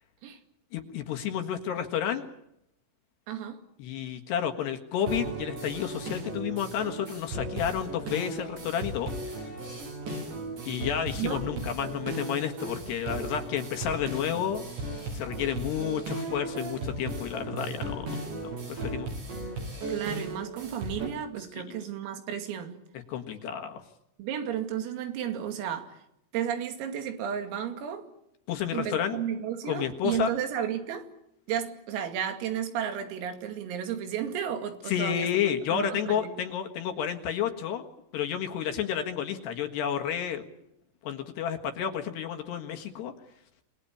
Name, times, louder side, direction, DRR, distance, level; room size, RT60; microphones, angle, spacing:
voice 1, 0.7-2.3 3.8-9.5 10.7-14.6 15.1-18.2 18.4-19.1 21.6-21.8 23.1-23.8 28.5-29.2 29.7-30.3 34.9-37.9 38.1-40.4 41.0-43.1, left 9 dB, 65° left, 3.3 m, -31 dB
voice 2, 3.3-3.6 10.6-10.9 11.1-11.7 19.9-22.8 24.2-26.0 26.3-28.1 28.7-31.1 31.5-35.3 35.7-36.3, right 9 dB, 85° right, 5.0 m, -33 dB
sound 1, 5.1-21.1, right 2 dB, 60° right, 8.4 m, -36 dB
28.0 x 19.5 x 8.7 m
omnidirectional pair, 5.9 m